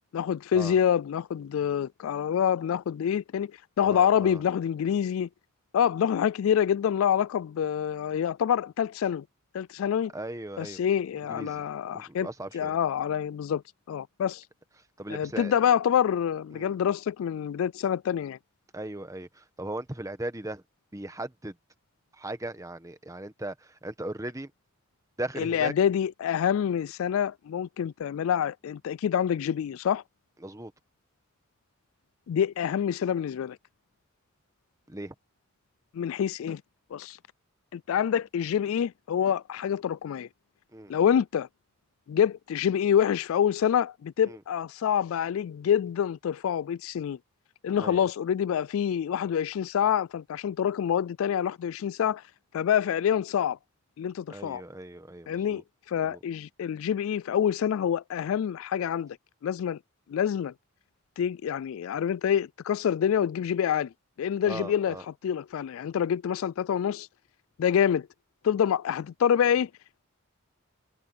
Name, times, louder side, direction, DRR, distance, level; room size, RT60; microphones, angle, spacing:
voice 1, 0.1-3.5 3.8-5.3 5.7-9.2 9.5-10.1 10.6-12.3 12.5-13.6 13.9-14.4 15.1-18.4 25.4-30.0 32.3-33.6 35.9-36.6 36.9-37.2 37.7-40.3 40.9-41.5 42.1-47.2 47.6-52.2 52.5-53.6 54.0-54.6 55.3-55.6 55.9-59.2 59.4-59.8 60.1-60.5 61.2-63.9 64.2-67.1 67.6-68.1 68.4-69.7, left 8 dB, 70° left, 0.3 m, -26 dB
voice 2, 3.8-4.4 10.1-10.8 11.3-11.6 11.9-12.8 15.0-15.5 16.5-16.7 18.7-19.3 19.6-20.6 20.9-21.5 22.2-23.5 23.8-24.5 25.2-25.7 30.4-30.7 34.9-35.1 40.7-40.9 44.2-44.4 47.8-48.0 54.3-55.6 56.0-56.2 64.5-65.0, right 1 dB, 15° right, 1.2 m, -37 dB
head